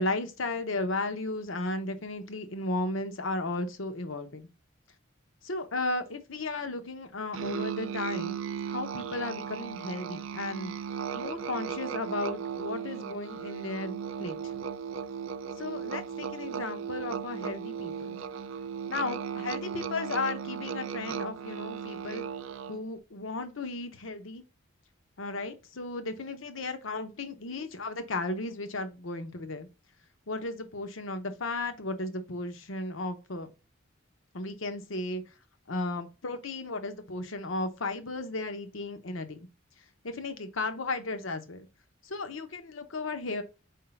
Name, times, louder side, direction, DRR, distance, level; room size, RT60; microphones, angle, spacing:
voice 1, 0.0-4.5 5.4-8.4 8.7-10.7 11.1-14.6 15.6-18.2 18.9-22.2 22.7-24.4 25.2-29.7 30.3-33.5 34.3-35.2 35.7-39.5 40.0-41.7 42.0-43.4, left 2 dB, 90° left, 0.9 m, -35 dB
Musical instrument, 7.3-22.9, right 7 dB, 85° right, 0.4 m, -36 dB
4.7 x 3.7 x 5.5 m
head